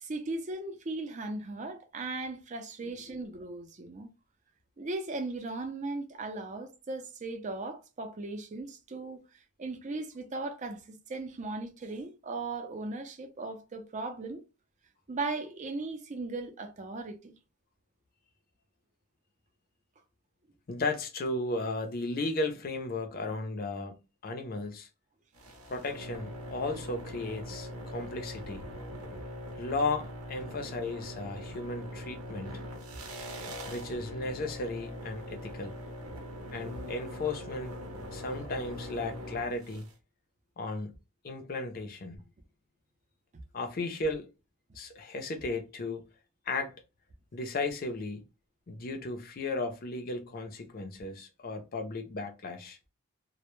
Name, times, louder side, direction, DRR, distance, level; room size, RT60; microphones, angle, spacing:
voice 1, 0.0-4.1 4.8-9.2 9.6-14.4 15.1-17.3, right 3 dB, 35° right, 0.4 m, -37 dB
voice 2, 20.7-24.0 24.2-24.9 25.7-28.6 29.6-32.6 33.7-35.7 36.5-37.8 38.1-39.9 40.6-40.9 41.2-42.2 43.5-44.3 44.8-46.0 46.5-46.7 47.3-48.2 48.7-52.8, left 2 dB, 40° left, 0.5 m, -35 dB
sound 1, 25.3-39.9, equal, 90° right, 0.7 m, -42 dB
2.1 x 2.1 x 2.9 m
head